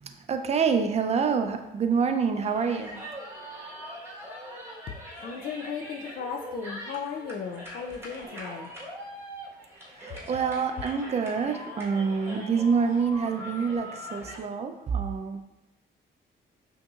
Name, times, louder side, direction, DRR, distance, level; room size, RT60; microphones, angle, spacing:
voice 1, 0.0-3.0 10.0-15.4, right 5 dB, 35° right, 7 dB, 0.4 m, -27 dB
sound 1, 2.4-14.4, equal, 10° right, 1.2 m, -42 dB
voice 2, 5.2-8.7, left 6 dB, 50° left, 2 dB, 0.4 m, -36 dB
5.6 x 2.7 x 2.4 m, 0.96 s
cardioid pair, 90°, 20 cm